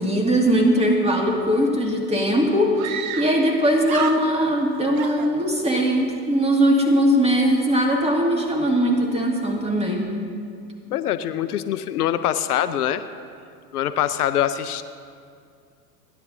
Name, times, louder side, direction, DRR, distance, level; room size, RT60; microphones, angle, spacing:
voice 1, 0.0-2.8 3.2-10.1, equal, 15° right, 1 dB, 2.1 m, -20 dB
Screaming, 2.0-2.1 2.8-3.6 3.8-4.6 5.0-5.9, right 9 dB, 60° right, 0.9 m, -31 dB
voice 2, 10.9-13.0 13.7-14.8, left 11 dB, 70° left, 11 dB, 0.7 m, -23 dB
30.0 x 10.5 x 2.7 m, 2.3 s
figure-of-eight pair, 90°, 48 cm